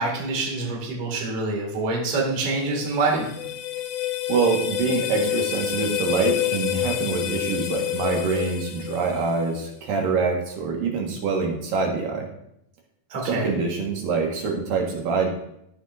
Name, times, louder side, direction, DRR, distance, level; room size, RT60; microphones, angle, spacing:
voice 1, 0.0-3.3 13.1-13.5, right 3 dB, 45° right, -1 dB, 2.8 m, -26 dB
sound 1, 2.5-9.6, left 13 dB, 75° left, 2.1 m, -28 dB
voice 2, 4.3-12.3 13.3-15.3, right 5 dB, 65° right, 0 dB, 3.0 m, -25 dB
14.5 x 7.3 x 2.6 m, 0.75 s
omnidirectional pair, 4.5 m